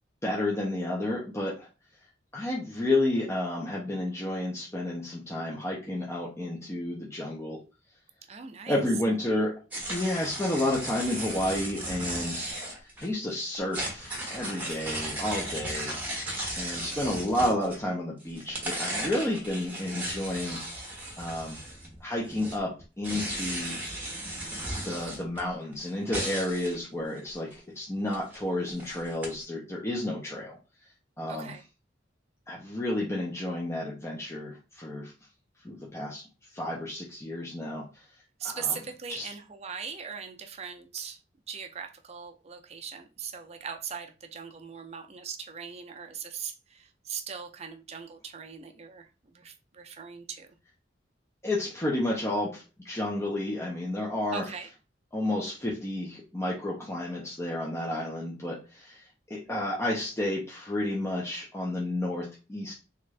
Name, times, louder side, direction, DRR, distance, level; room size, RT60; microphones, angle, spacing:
voice 1, 0.2-1.7 2.3-7.6 8.7-9.6 9.9-12.5 13.0-16.0 16.6-20.6 21.2-21.6 22.0-23.8 24.3-24.5 24.8-30.6 31.2-31.5 32.5-35.1 35.6-36.2 36.5-38.1 38.4-38.8 39.1-39.3 51.4-54.4 55.1-62.7, left 1 dB, 15° left, 0.7 m, -31 dB
voice 2, 8.3-8.8 14.7-14.8 31.3-31.6 38.4-41.2 41.5-50.5 54.3-54.7, right 7 dB, 35° right, 0.5 m, -39 dB
sound 1, 9.7-13.1 13.5-18.0 18.3-22.0 22.2-26.8 27.2-27.5 28.1-28.4 28.7-29.3, right 1 dB, 10° right, 1.1 m, -36 dB
3.5 x 2.5 x 3.2 m
head